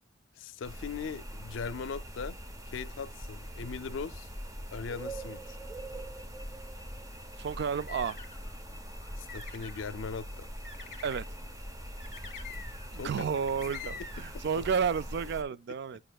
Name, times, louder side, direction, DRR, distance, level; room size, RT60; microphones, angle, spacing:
voice 1, 0.3-2.4 2.7-4.3 4.7-5.6 9.2-10.5 13.0-13.3 14.2-14.7 15.9-16.0, left 5 dB, 80° left, 0.4 m, -39 dB
sound 1, 0.6-15.4, equal, 20° right, 0.8 m, -43 dB
voice 2, 7.4-8.2 11.0-11.2 12.9-16.0, right 6 dB, 60° right, 0.3 m, -31 dB
sound 2, 7.5-8.5 9.0-9.9 10.6-11.2 12.0-13.0 13.3-14.3, left 5 dB, 40° left, 1.2 m, -46 dB
11.0 x 5.3 x 2.3 m
head